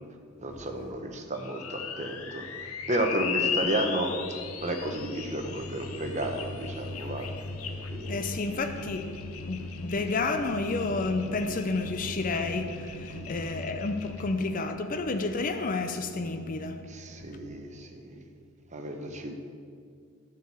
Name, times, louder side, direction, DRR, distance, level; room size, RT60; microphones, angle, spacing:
voice 1, 0.4-2.4 2.9-4.1 4.6-7.3 7.6-8.3 13.1-13.4 16.9-18.2 18.7-19.3, right 1 dB, 35° right, 0.9 m, -32 dB
sound 1, 1.3-14.2, left 5 dB, 85° left, 0.8 m, -37 dB
voice 2, 8.1-9.2 9.5-16.8, left 3 dB, 40° left, 0.5 m, -30 dB
11.5 x 4.6 x 7.4 m
head